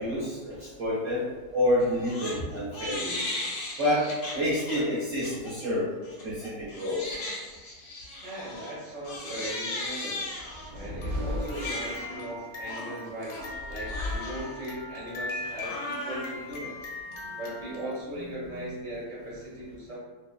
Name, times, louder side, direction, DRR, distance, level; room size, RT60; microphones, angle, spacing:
voice 1, 0.0-3.1 3.8-5.9 6.2-7.2, left 1 dB, 60° right, -9 dB, 0.9 m, -28 dB
Crying sobbing, 1.8-2.4 2.7-4.8 5.2-5.5 6.0-18.0, left 2 dB, 65° left, 0.9 m, -37 dB
voice 2, 8.2-10.3 10.7-16.8 17.4-20.0, right 1 dB, 25° right, -7 dB, 0.9 m, -38 dB
sound 1, 10.3-12.4 13.4-14.9, left 1 dB, 75° right, 0.5 m, -35 dB
2.6 x 2.2 x 2.4 m, 1.3 s
omnidirectional pair, 1.7 m